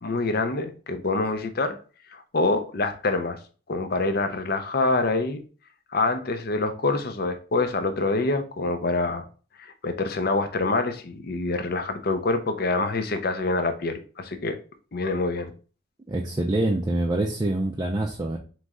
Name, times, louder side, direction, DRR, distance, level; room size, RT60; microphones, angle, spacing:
voice 1, 0.0-1.8 2.1-3.4 3.7-5.4 5.9-9.3 9.6-14.6 14.9-15.5, left 3 dB, 50° left, 0.6 m, -26 dB
voice 2, 16.1-18.4, right 1 dB, 20° right, 0.4 m, -25 dB
3.9 x 3.1 x 3.6 m
head